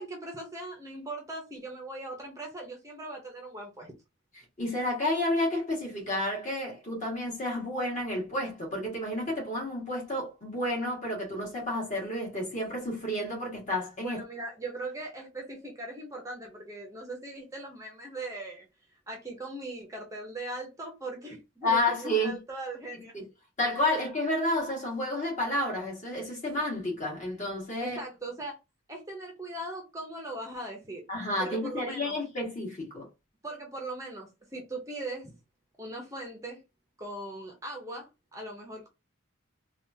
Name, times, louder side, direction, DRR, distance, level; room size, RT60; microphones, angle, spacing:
voice 1, 0.0-3.9 14.0-18.7 19.1-23.1 27.8-28.6 28.9-31.0 31.4-32.2 33.4-35.3 35.8-36.6 37.0-38.9, right 2 dB, 15° right, 0.7 m, -39 dB
voice 2, 4.6-14.2 21.6-22.4 23.1-23.2 23.6-28.0 31.1-33.1, left 1 dB, 35° left, 1.8 m, -30 dB
3.5 x 2.4 x 2.7 m
head